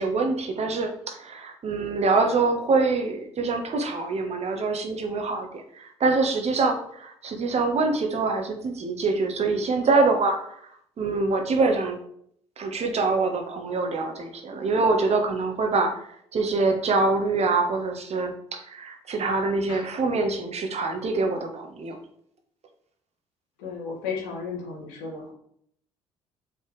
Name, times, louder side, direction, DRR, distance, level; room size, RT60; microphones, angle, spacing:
voice 1, 0.0-10.6 11.0-12.0 12.6-22.0, right 3 dB, 40° right, 4 dB, 1.4 m, -25 dB
voice 2, 23.6-25.3, left 5 dB, 70° left, -2 dB, 2.1 m, -34 dB
7.1 x 5.7 x 3.3 m, 0.69 s
figure-of-eight pair, 50°, 16 cm